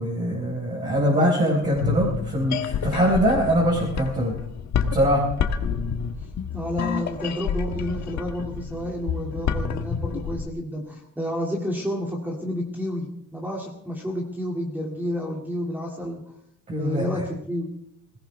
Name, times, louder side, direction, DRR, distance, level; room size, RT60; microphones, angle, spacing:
voice 1, 0.0-4.3 4.9-5.2 16.7-17.2, equal, 25° right, -6 dB, 4.8 m, -22 dB
voice 2, 1.0-1.8 6.5-16.2 16.8-17.7, equal, 5° right, -2 dB, 2.5 m, -30 dB
sound 1, 1.6-10.5, left 7 dB, 55° left, 1.4 m, -29 dB
21.0 x 17.5 x 3.5 m, 0.73 s
cardioid pair, 165°, 33 cm